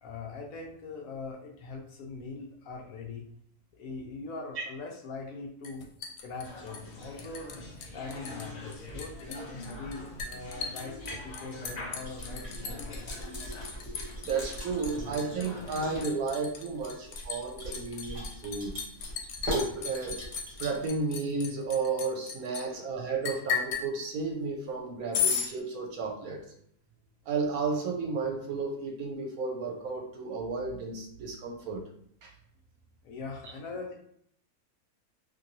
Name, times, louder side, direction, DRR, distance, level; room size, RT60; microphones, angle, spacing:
voice 1, 0.0-3.2 3.7-5.9 6.2-7.6 7.9-11.0 11.2-13.2 33.0-33.9, left 3 dB, 70° left, 0 dB, 0.9 m, -41 dB
Liquid, 5.6-7.6 7.8-8.5 8.7-22.6 23.2-23.9 25.1-25.5, left 7 dB, 85° left, 1.1 m, -35 dB
sound 1, 6.4-16.1, left 1 dB, 50° left, 0.5 m, -44 dB
sound 2, 12.0-20.9, equal, 30° right, 0.9 m, -41 dB
voice 2, 14.2-18.7 19.5-20.3 20.6-26.4 27.3-31.8 32.2-32.3, right 4 dB, 70° right, 2 dB, 1.0 m, -33 dB
2.9 x 2.6 x 2.6 m, 0.67 s
omnidirectional pair, 1.7 m